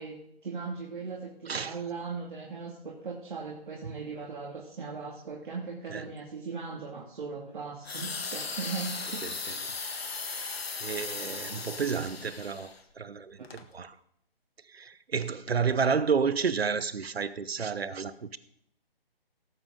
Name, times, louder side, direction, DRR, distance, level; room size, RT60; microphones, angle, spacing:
voice 1, 0.0-9.3, right 4 dB, 55° right, 2.4 m, -38 dB
sound 1, 7.8-12.8 13.4-13.6, left 4 dB, 80° left, 1.6 m, -37 dB
voice 2, 10.8-13.9 14.7-18.4, right 6 dB, 85° right, 1.0 m, -31 dB
18.5 x 7.7 x 3.8 m
hypercardioid pair, 165°, 30 cm